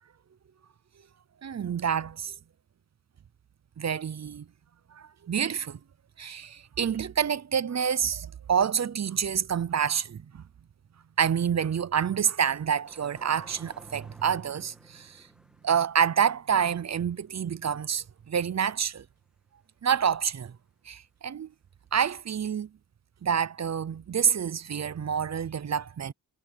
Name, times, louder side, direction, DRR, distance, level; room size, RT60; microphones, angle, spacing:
voice 1, 1.4-2.3 3.8-4.5 5.0-5.8 6.2-10.4 11.2-15.2 15.6-19.0 19.8-20.5 20.9-21.5 21.9-22.7 23.2-26.1, right 8 dB, 45° right, 0.6 m, -28 dB
sound 1, 12.8-18.3 18.7-18.8 21.9-22.0, equal, ahead, 2.3 m, -56 dB
wide cardioid pair, 160°, 37 cm